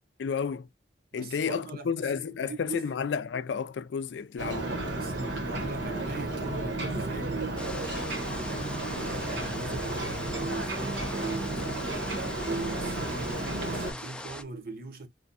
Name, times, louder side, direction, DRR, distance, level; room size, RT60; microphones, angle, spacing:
voice 1, 0.2-0.7 1.1-4.7, left 6 dB, 75° left, 0.4 m, -31 dB
voice 2, 1.1-2.8 4.4-8.0 8.9-11.9 12.4-15.1, right 4 dB, 55° right, 0.9 m, -40 dB
Ocean, 4.4-13.9, right 2 dB, 75° right, 1.4 m, -33 dB
sound 1, 7.6-14.4, left 1 dB, 5° left, 0.4 m, -41 dB
3.2 x 2.2 x 4.0 m
head